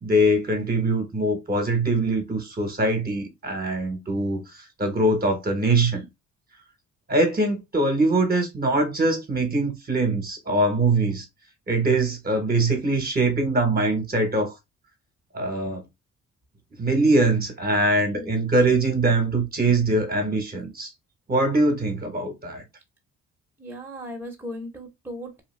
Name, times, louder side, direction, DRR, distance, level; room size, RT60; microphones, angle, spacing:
voice 1, 0.0-4.4 4.8-6.0 7.1-11.2 11.7-14.5 15.3-15.8 16.8-20.9 21.3-22.6, right 2 dB, 30° right, 1.0 m, -22 dB
voice 2, 23.6-25.4, equal, 5° right, 0.9 m, -37 dB
2.8 x 2.2 x 3.1 m
cardioid pair, 90°, 30 cm